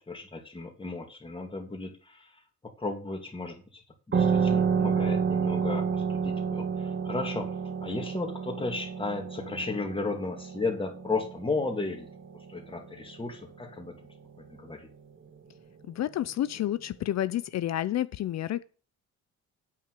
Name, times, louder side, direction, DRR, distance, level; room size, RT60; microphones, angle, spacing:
voice 1, 0.1-2.4 2.6-3.8 4.1-7.5 7.8-12.1 12.5-13.9 14.4-14.9, left 3 dB, 15° left, 2.9 m, -34 dB
sound 1, 4.1-13.3, right 6 dB, 40° right, 1.8 m, -30 dB
voice 2, 15.9-18.6, left 12 dB, 60° left, 0.6 m, -30 dB
8.9 x 5.8 x 6.9 m
cardioid pair, 90°, 30 cm